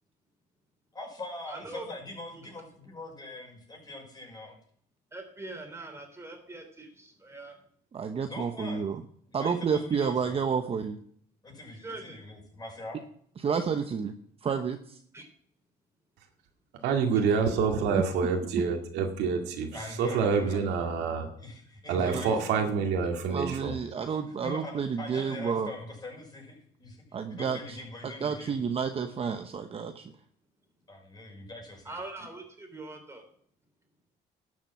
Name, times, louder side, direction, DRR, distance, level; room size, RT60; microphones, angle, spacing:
voice 1, 0.9-4.5 8.3-8.9 9.3-10.4 11.4-13.0 19.7-20.6 21.4-22.4 24.0-24.1 24.4-27.0 27.3-28.5 30.9-32.0, left 2 dB, 25° left, 0 dB, 5.8 m, -42 dB
voice 2, 1.5-1.9 5.1-7.6 11.8-12.2 15.1-15.2 31.9-33.2, right 2 dB, 15° right, 4 dB, 3.6 m, -42 dB
voice 3, 7.9-9.0 9.3-11.0 13.4-14.1 14.4-15.0 17.9-18.0 18.5-18.6 22.0-22.2 23.3-25.7 27.1-27.8 28.2-30.1, right 6 dB, 35° right, 7 dB, 0.9 m, -30 dB
voice 4, 16.8-19.7 20.0-21.3 21.9-23.7, right 5 dB, 90° right, 3 dB, 2.2 m, -27 dB
12.0 x 7.5 x 5.9 m, 0.62 s
cardioid pair, 110°, 17 cm